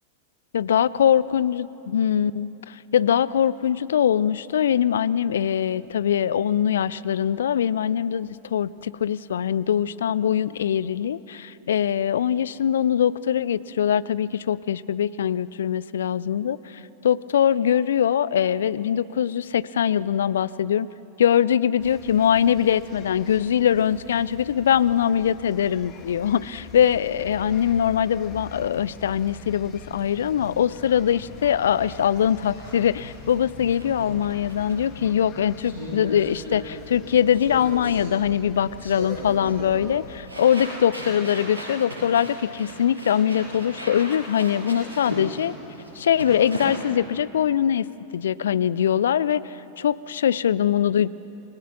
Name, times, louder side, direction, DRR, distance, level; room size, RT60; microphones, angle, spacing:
voice 1, 0.5-20.9 21.2-45.5 46.0-47.9 48.1-51.1, left 9 dB, 65° left, 19 dB, 0.4 m, -22 dB
sound 1, 21.8-40.2, left 6 dB, 35° left, 1.9 m, -44 dB
sound 2, 31.4-46.8, equal, 80° right, 6.0 m, -38 dB
29.0 x 21.0 x 6.0 m, 2.9 s
figure-of-eight pair, 90°, 0 cm